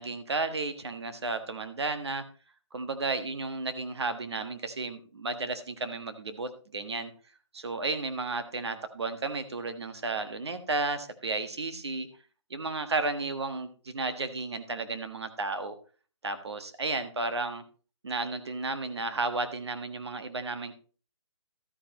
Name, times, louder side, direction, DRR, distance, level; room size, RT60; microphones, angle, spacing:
voice 1, 0.0-2.2 2.7-7.1 7.5-12.1 12.5-15.7 16.2-17.6 18.0-20.7, right 3 dB, 60° right, 9 dB, 1.5 m, -33 dB
13.0 x 9.7 x 3.0 m, 0.38 s
hypercardioid pair, 180°, 15 cm